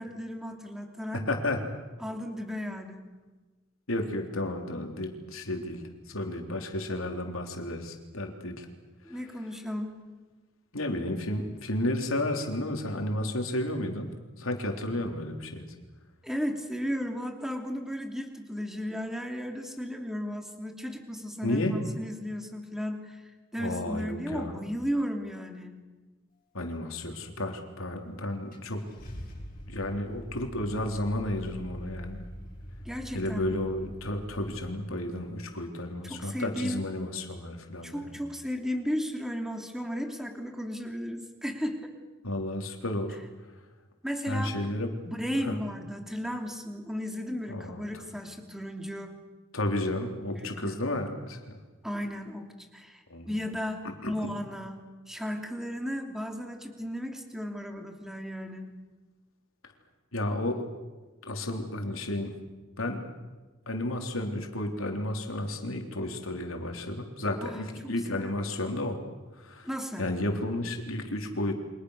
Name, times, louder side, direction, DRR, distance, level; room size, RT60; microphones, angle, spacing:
voice 1, 0.0-1.2 2.0-3.0 9.0-10.0 16.2-25.8 32.8-33.6 36.1-36.8 37.8-41.9 44.0-44.5 45.0-49.1 50.3-50.8 51.8-54.8 55.1-58.7 67.4-67.6 68.1-68.3 69.6-70.1, equal, ahead, 3 dB, 3.0 m, -35 dB
voice 2, 1.1-1.6 3.9-8.7 9.0-9.3 10.7-14.1 14.4-15.7 21.4-21.8 23.6-24.6 26.5-28.9 29.7-32.2 33.1-38.2 42.2-43.2 44.2-45.0 45.4-45.6 47.5-48.1 49.5-51.6 53.1-53.4 54.0-54.1 60.1-60.7 61.2-62.4 62.8-63.1 63.7-69.0 69.3-69.7 70.0-71.5, left 1 dB, 85° left, 4 dB, 3.7 m, -32 dB
Car / Engine starting, 27.8-27.9 28.5-34.7, equal, 45° left, 7.5 m, -43 dB
29.5 x 25.5 x 6.6 m, 1.3 s
head